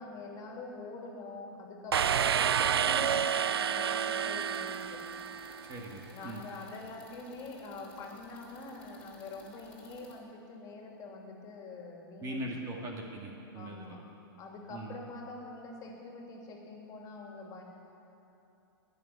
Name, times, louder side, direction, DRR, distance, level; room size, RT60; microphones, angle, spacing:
voice 1, 0.0-5.0 6.1-12.5 13.5-14.0 14.4-17.6, left 3 dB, 30° left, -1 dB, 3.1 m, -45 dB
sound 1, 1.9-5.7, right 8 dB, 90° right, 0.4 m, -29 dB
sound 2, 4.4-10.2, left 1 dB, 10° left, 3.3 m, -55 dB
voice 2, 5.7-6.4 12.2-14.0 14.7-15.0, right 1 dB, 25° right, 0 dB, 2.0 m, -40 dB
20.0 x 7.1 x 9.6 m, 2.9 s
hypercardioid pair, 125°, 13 cm